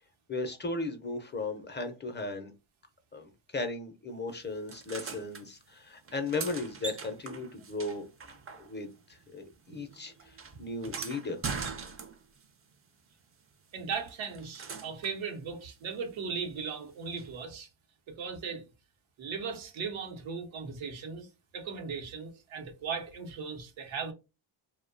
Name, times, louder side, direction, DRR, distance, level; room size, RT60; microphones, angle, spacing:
voice 1, 0.3-2.5 3.1-8.1 8.6-11.4, left 3 dB, 25° left, 0.5 m, -36 dB
sound 1, 4.7-5.4 6.0-9.0 9.3-12.4 13.9-15.2 17.2-17.3, right 5 dB, 30° right, 0.4 m, -41 dB
voice 2, 13.7-17.7 18.1-18.6 19.2-21.3 21.5-24.1, right 5 dB, 90° right, 0.8 m, -37 dB
2.6 x 2.1 x 2.5 m
cardioid pair, 100°, 45 cm